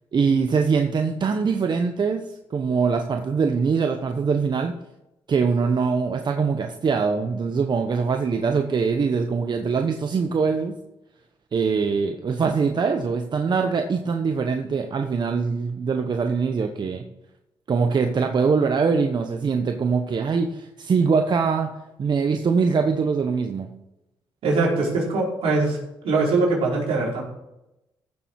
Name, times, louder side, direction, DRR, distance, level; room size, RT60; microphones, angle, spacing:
voice 1, 0.1-4.7 5.3-10.7 11.5-17.0 17.7-23.7, right 5 dB, 50° right, 5 dB, 1.1 m, -23 dB
voice 2, 24.4-25.8 26.0-27.2, right 3 dB, 75° right, -3 dB, 4.8 m, -22 dB
15.5 x 7.1 x 4.8 m, 0.91 s
supercardioid pair, 65°, 10 cm